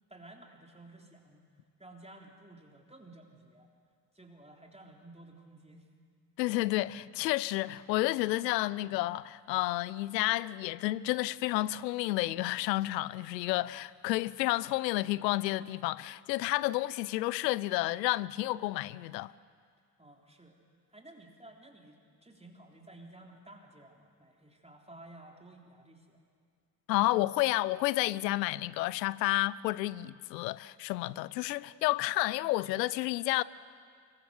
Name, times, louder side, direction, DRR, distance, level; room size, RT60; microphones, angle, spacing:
voice 1, 0.1-1.5 1.8-3.7 4.1-5.9 20.0-20.6 20.9-26.2, right 2 dB, 15° right, 3.4 m, -54 dB
voice 2, 6.4-19.3 26.9-33.4, left 18 dB, 80° left, 0.6 m, -30 dB
25.5 x 24.0 x 6.4 m
hypercardioid pair, 45°, 49 cm